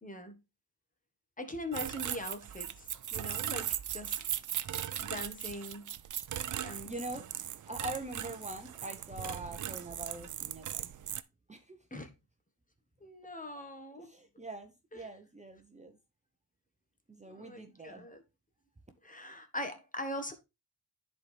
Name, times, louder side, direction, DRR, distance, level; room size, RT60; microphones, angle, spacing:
voice 1, 0.0-0.3 1.4-2.8 3.1-4.2 5.0-5.8 6.5-6.9 11.9-12.1 13.0-14.1 14.9-15.1 17.3-18.2 19.0-20.3, left 1 dB, 20° left, 1.5 m, -41 dB
sound 1, 1.7-11.2, right 10 dB, 50° right, 0.6 m, -38 dB
voice 2, 6.6-10.8 11.5-11.8 14.0-16.0 17.1-18.1, right 1 dB, 20° right, 0.9 m, -44 dB
10.0 x 4.3 x 3.3 m
cardioid pair, 70°, 38 cm